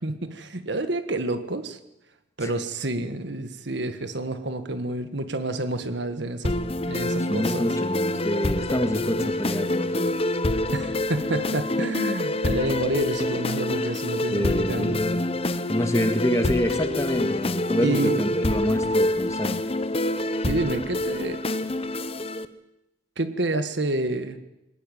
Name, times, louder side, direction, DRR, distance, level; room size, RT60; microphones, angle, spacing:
voice 1, 0.0-1.8 2.4-6.6 6.9-7.7 10.7-15.0 17.8-18.4 20.1-21.4 23.2-24.4, right 2 dB, 60° right, 9 dB, 1.6 m, -29 dB
sound 1, 6.4-22.4, left 1 dB, 30° left, 1.0 m, -26 dB
voice 2, 7.3-10.2 14.3-15.2 15.7-19.6, equal, 15° left, 6 dB, 2.2 m, -27 dB
21.5 x 19.0 x 9.2 m, 0.93 s
head